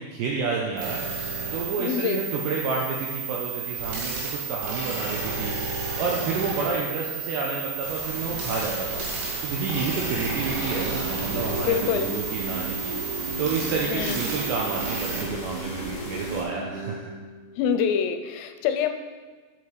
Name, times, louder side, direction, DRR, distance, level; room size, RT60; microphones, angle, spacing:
voice 1, 0.0-9.0 9.4-12.9 13.4-17.1, right 4 dB, 90° right, -2 dB, 2.5 m, -30 dB
sound 1, 0.8-15.2, right 5 dB, 70° right, 4.6 m, -32 dB
voice 2, 1.8-2.2 11.6-12.1 13.9-14.2 17.6-18.9, left 8 dB, 85° left, 8 dB, 3.1 m, -25 dB
sound 2, 7.8-16.4, left 1 dB, 55° left, 1.3 m, -38 dB
sound 3, 10.5-17.7, right 2 dB, 55° right, 1.7 m, -36 dB
8.0 x 7.2 x 4.7 m, 1.4 s
omnidirectional pair, 5.9 m